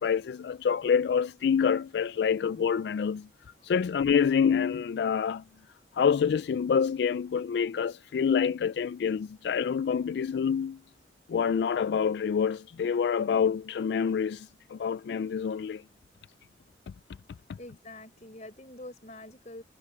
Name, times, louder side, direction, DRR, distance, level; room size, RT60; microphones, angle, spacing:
voice 1, 0.0-3.3 3.6-5.4 5.9-10.8 11.3-15.8, left 7 dB, 75° left, 0.3 m, -27 dB
voice 2, 17.6-19.6, left 1 dB, 40° left, 4.5 m, -45 dB
head